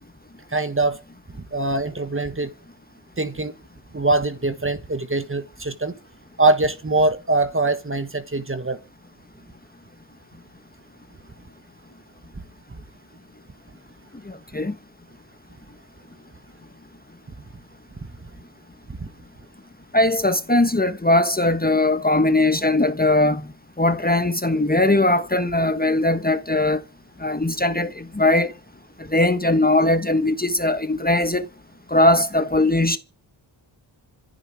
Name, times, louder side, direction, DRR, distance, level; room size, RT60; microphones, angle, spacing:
voice 1, 0.5-1.0 1.3-2.5 3.2-3.5 3.9-5.9 6.4-8.8 12.7-12.8 19.0-19.1, right 2 dB, 25° right, 1.5 m, -23 dB
voice 2, 14.3-14.7 19.9-23.5 23.8-26.8 27.2-28.5 29.1-31.4 31.9-33.0, left 2 dB, 20° left, 1.2 m, -20 dB
26.0 x 9.4 x 4.7 m
wide cardioid pair, 110°, 48 cm